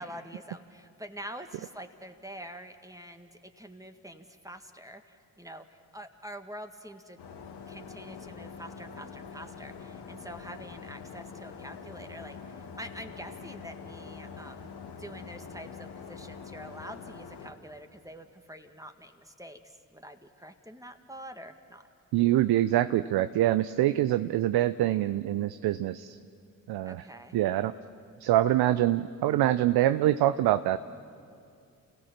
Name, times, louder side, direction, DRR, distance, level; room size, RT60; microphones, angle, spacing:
voice 1, 0.0-7.2 7.7-14.7 15.0-21.9 26.9-27.4, equal, 10° right, 6 dB, 1.8 m, -46 dB
sound 1, 7.2-17.5, left 5 dB, 70° left, 1.7 m, -45 dB
voice 2, 22.1-26.2 26.7-27.0 27.3-27.7 28.2-30.8, right 13 dB, 65° right, 13 dB, 0.6 m, -25 dB
29.0 x 16.5 x 7.4 m, 2.4 s
hypercardioid pair, 40°, 41 cm